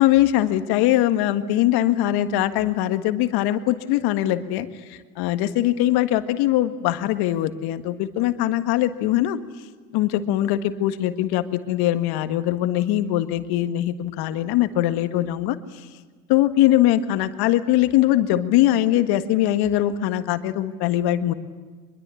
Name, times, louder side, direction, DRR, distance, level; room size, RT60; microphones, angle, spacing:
voice 1, 0.0-9.4 9.9-15.9 16.3-21.3, left 13 dB, 65° left, 10 dB, 1.8 m, -21 dB
24.5 x 22.0 x 8.5 m, 1.5 s
hypercardioid pair, 65°, 42 cm